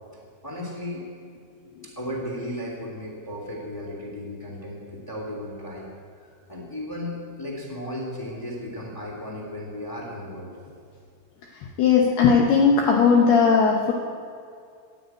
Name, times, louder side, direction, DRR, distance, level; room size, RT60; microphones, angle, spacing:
voice 1, 0.4-1.1 1.8-5.9 6.2-10.5, left 1 dB, 20° left, -3 dB, 0.6 m, -35 dB
voice 2, 11.8-13.9, left 5 dB, 75° left, 0 dB, 2.4 m, -18 dB
14.5 x 9.5 x 9.1 m, 2.3 s
omnidirectional pair, 5.8 m